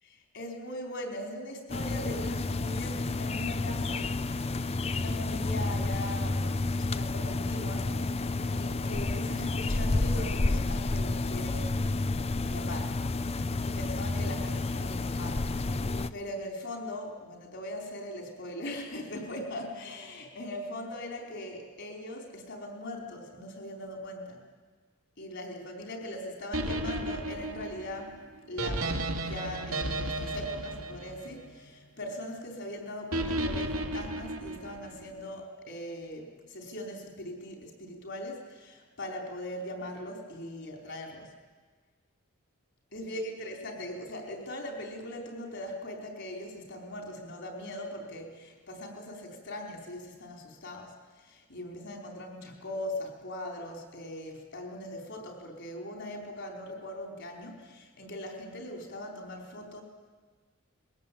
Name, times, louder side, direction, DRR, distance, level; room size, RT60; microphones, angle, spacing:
voice 1, 0.3-4.2 4.9-8.2 8.5-11.9 12.4-13.0 13.6-15.5 16.1-24.4 25.2-28.9 29.2-41.3 42.9-59.8, left 1 dB, 55° left, 3 dB, 4.5 m, -40 dB
sound 1, 1.7-16.1, left 2 dB, 30° left, 0.5 m, -30 dB
sound 2, 26.5-31.8 33.1-35.0, right 1 dB, 75° right, 2.2 m, -33 dB
22.0 x 17.0 x 8.7 m, 1.4 s
head